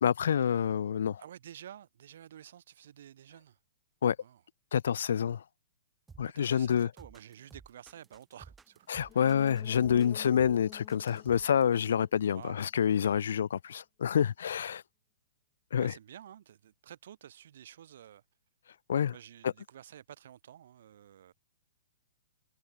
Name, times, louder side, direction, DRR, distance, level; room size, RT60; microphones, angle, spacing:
voice 1, 0.0-1.2 4.0-4.2 4.7-5.4 6.2-6.9 8.9-14.8 15.7-15.9 18.9-19.1 19.4-19.5, left 8 dB, 65° left, 0.4 m, -27 dB
voice 2, 1.2-3.6 4.2-4.4 6.3-9.2 12.3-12.6 15.8-18.2 19.1-21.3, right 10 dB, 60° right, 3.1 m, -51 dB
sound 1, 6.1-11.7, right 5 dB, 10° right, 1.0 m, -55 dB
sound 2, 9.0-12.7 13.0-13.1, left 14 dB, 30° left, 0.8 m, -51 dB
figure-of-eight pair, 115°, 0 cm